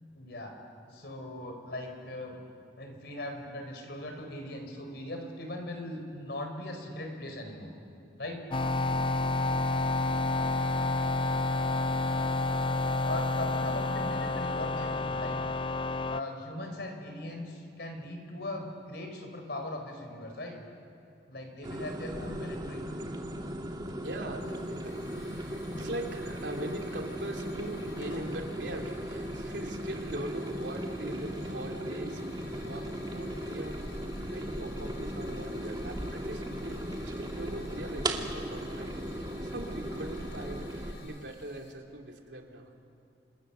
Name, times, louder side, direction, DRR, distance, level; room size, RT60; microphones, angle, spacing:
voice 1, 0.1-0.5 0.9-2.4 2.8-7.7 8.2-8.4 13.0-15.4 16.1-20.6 21.3-22.8 25.6-25.9, left 1 dB, 65° left, 4 dB, 4.4 m, -39 dB
sound 1, 8.5-16.2, left 2 dB, 30° left, 0.6 m, -29 dB
sound 2, 21.6-40.9, right 1 dB, 25° right, 1.8 m, -37 dB
voice 2, 24.0-32.2 32.5-33.9 34.3-42.7, right 1 dB, 75° right, 1 dB, 3.1 m, -41 dB
Hiss / Fire, 24.4-41.7, left 2 dB, 85° left, 4.3 m, -52 dB
29.0 x 26.5 x 7.0 m, 2.6 s
head